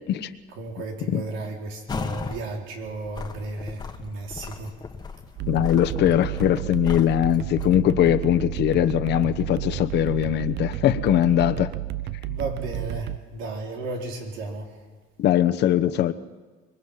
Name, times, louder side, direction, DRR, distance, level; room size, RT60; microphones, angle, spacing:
voice 1, 0.5-4.7 12.2-14.7, right 2 dB, 85° right, 1 dB, 4.7 m, -34 dB
sound 1, 1.9-2.4 2.8-7.8, left 5 dB, 20° left, 1.5 m, -36 dB
sound 2, 5.4-13.2, right 14 dB, 60° right, 0.7 m, -32 dB
voice 2, 5.5-11.7 15.2-16.1, left 11 dB, 60° left, 9 dB, 1.1 m, -21 dB
25.5 x 22.5 x 5.8 m, 1.4 s
cardioid pair, 145°, 19 cm